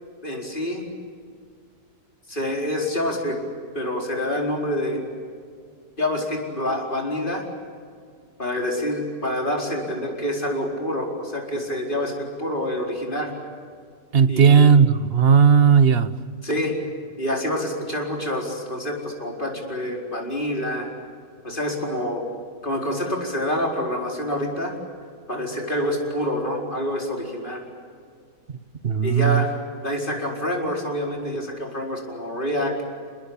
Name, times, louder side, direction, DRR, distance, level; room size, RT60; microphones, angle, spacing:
voice 1, 0.2-0.9 2.3-3.4 3.7-5.1 6.0-7.4 8.4-13.3 14.3-14.7 16.4-16.7 17.2-20.9 21.4-22.2 22.6-24.7 25.3-27.6 29.0-29.6 29.8-32.7, left 1 dB, 30° left, 0 dB, 4.7 m, -27 dB
voice 2, 14.1-16.1 28.8-29.4, right 6 dB, 40° right, 13 dB, 1.1 m, -15 dB
28.5 x 20.5 x 8.5 m, 2.1 s
omnidirectional pair, 1.8 m